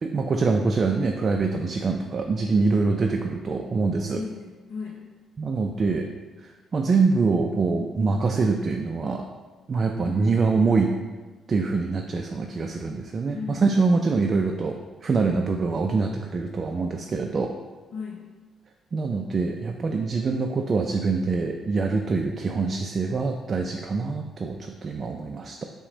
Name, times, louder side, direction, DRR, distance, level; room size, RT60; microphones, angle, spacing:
voice 1, 0.0-4.2 5.4-6.1 6.4-9.3 9.7-10.9 11.5-17.5 18.9-25.7, right 4 dB, 40° right, 3 dB, 0.3 m, -24 dB
voice 2, 4.1-5.0 10.0-10.3 13.3-13.9 17.9-18.2, left 5 dB, 80° left, -2 dB, 0.5 m, -36 dB
5.7 x 2.1 x 3.8 m, 1.3 s
cardioid pair, 90°, 0 cm